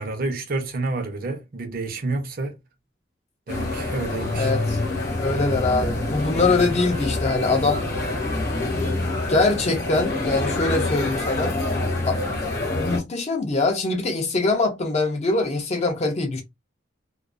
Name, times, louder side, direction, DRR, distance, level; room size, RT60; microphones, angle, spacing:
voice 1, 0.0-2.6 3.5-4.5, right 3 dB, 50° right, 0.6 m, -29 dB
sound 1, 3.5-13.0, left 2 dB, 50° left, 0.8 m, -26 dB
voice 2, 4.4-4.8 5.2-7.8 9.3-11.5 12.1-12.5 12.7-16.4, left 3 dB, 35° left, 0.4 m, -23 dB
2.3 x 2.3 x 2.4 m
head